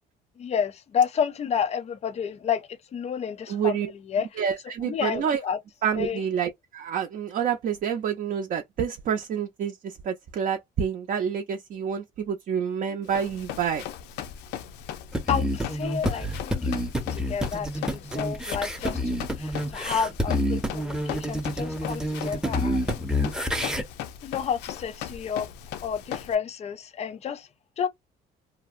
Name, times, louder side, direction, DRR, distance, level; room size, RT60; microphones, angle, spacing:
voice 1, 0.4-4.5 4.8-5.6 6.0-6.2 15.3-16.8 17.1-22.9 24.2-25.5 25.8-27.5 27.8-27.9, left 7 dB, 40° left, 0.5 m, -30 dB
voice 2, 3.5-3.9 4.4-5.4 5.8-13.8, right 7 dB, 55° right, 0.5 m, -28 dB
Run, 13.1-26.3, left 10 dB, 90° left, 0.5 m, -38 dB
sound 1, 15.1-23.8, equal, 5° right, 0.6 m, -28 dB
2.7 x 2.0 x 2.4 m
cardioid pair, 110°, 17 cm